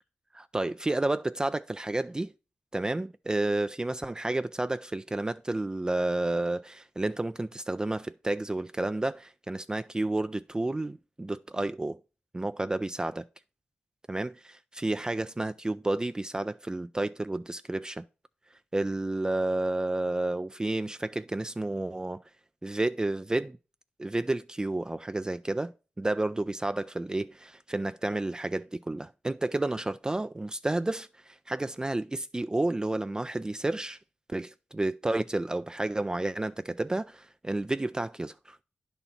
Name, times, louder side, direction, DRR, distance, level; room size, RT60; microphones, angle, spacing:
voice 1, 0.3-2.3 2.7-12.0 12.3-13.2 14.1-14.3 14.7-18.0 18.7-22.2 22.6-23.6 24.0-34.0 34.3-38.6, right 2 dB, 20° right, 0.3 m, -31 dB
10.0 x 4.1 x 5.7 m
cardioid pair, 65°, 4 cm